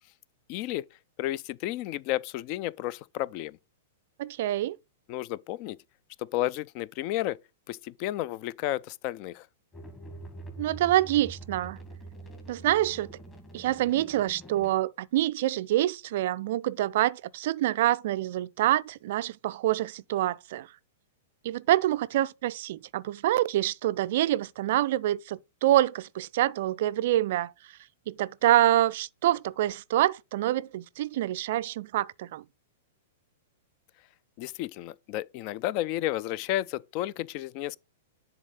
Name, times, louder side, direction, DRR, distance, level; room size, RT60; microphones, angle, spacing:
voice 1, 0.5-0.8 1.2-3.6 5.1-5.8 6.2-7.4 7.7-9.5 34.4-37.8, left 15 dB, 40° left, 0.3 m, -32 dB
voice 2, 4.2-4.8 10.6-11.8 12.5-13.1 13.5-20.7 21.4-27.5 28.1-32.4, right 14 dB, 50° right, 0.3 m, -26 dB
sound 1, 9.7-14.7, right 2 dB, 15° left, 1.8 m, -45 dB
10.0 x 3.9 x 4.0 m
figure-of-eight pair, 100°, 0 cm